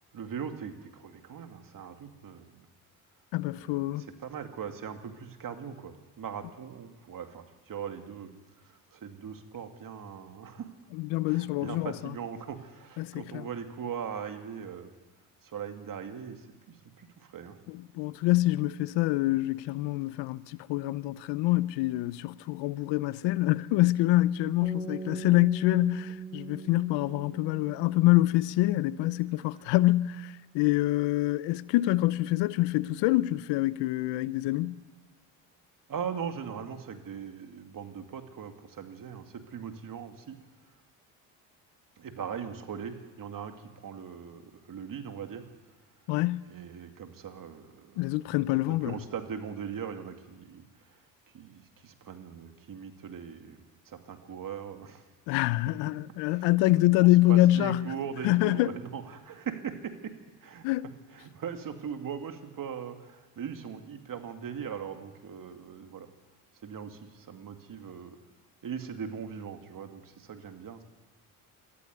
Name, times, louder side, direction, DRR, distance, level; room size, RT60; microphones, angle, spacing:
voice 1, 0.1-2.7 3.6-10.7 11.3-14.9 15.4-17.6 35.9-40.4 42.0-45.5 46.5-48.0 48.7-51.0 51.3-55.0 56.3-56.5 57.0-60.1 60.4-60.7 61.1-66.1 66.6-68.2 68.6-70.8, right 7 dB, 50° right, 2.4 m, -40 dB
voice 2, 3.3-4.0 10.9-11.9 13.0-13.5 17.7-34.8 46.1-46.5 48.0-48.9 55.3-57.9 58.2-58.7 60.6-60.9, left 17 dB, 80° left, 0.7 m, -26 dB
sound 1, 24.6-28.8, right 5 dB, 15° right, 1.6 m, -42 dB
22.5 x 14.0 x 9.4 m
supercardioid pair, 75°, 43 cm